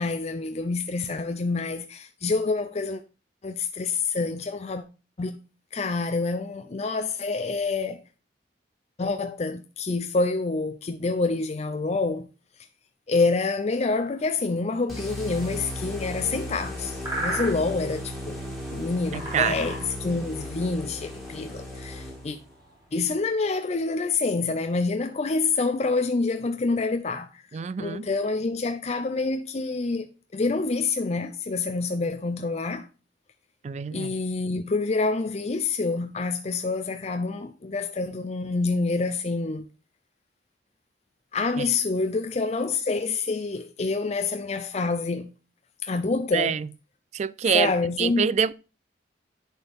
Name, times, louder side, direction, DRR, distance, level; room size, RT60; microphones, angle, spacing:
voice 1, 0.0-3.0 3.4-4.8 5.2-5.4 5.7-8.0 9.0-12.3 13.1-18.4 18.7-22.4 22.9-32.9 33.9-39.7 41.3-45.3 45.8-46.6 47.5-48.3, left 3 dB, 35° left, 0.5 m, -27 dB
sound 1, 13.8-23.5, right 1 dB, 20° right, 3.2 m, -39 dB
sound 2, 14.9-22.5, left 1 dB, ahead, 2.2 m, -36 dB
voice 2, 19.1-19.5 27.5-28.1 33.6-34.1 41.6-41.7 46.3-46.7 47.1-47.7 48.0-48.5, right 7 dB, 40° right, 0.3 m, -25 dB
10.0 x 4.4 x 3.5 m
head